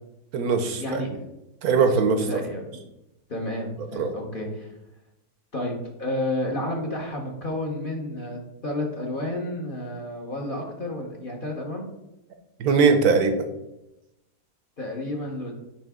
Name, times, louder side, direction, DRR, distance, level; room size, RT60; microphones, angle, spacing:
voice 1, 0.3-1.0 1.6-2.3 4.0-4.1 12.6-13.5, right 5 dB, 70° right, 7 dB, 1.1 m, -20 dB
voice 2, 2.3-2.7 3.3-4.7 5.5-5.7 6.0-11.8 14.8-15.5, left 1 dB, 40° left, 0 dB, 0.9 m, -31 dB
9.9 x 3.3 x 3.5 m, 0.92 s
omnidirectional pair, 1.7 m